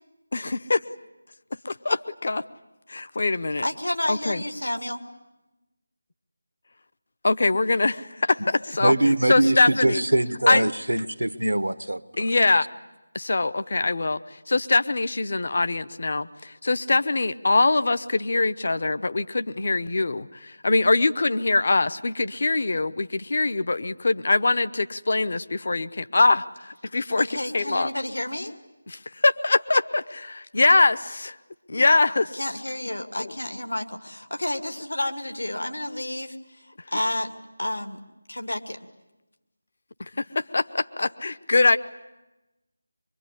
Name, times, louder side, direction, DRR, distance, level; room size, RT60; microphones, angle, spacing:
voice 1, 0.3-0.8 1.6-2.4 2.9-3.7 4.1-4.4 7.2-8.9 9.3-10.0 10.5-10.6 12.2-12.7 13.1-27.3 27.5-27.9 29.2-30.0 30.3-31.4 31.7-32.4 33.2-33.3 40.0-41.8, left 3 dB, 55° left, 12 dB, 0.9 m, -23 dB
voice 2, 3.6-5.0 27.2-28.5 32.3-38.0 38.3-38.8, left 1 dB, 80° left, 5 dB, 2.4 m, -30 dB
voice 3, 8.8-12.3, right 1 dB, 85° right, 12 dB, 1.2 m, -23 dB
24.0 x 23.0 x 9.9 m, 1.1 s
figure-of-eight pair, 160°, 0 cm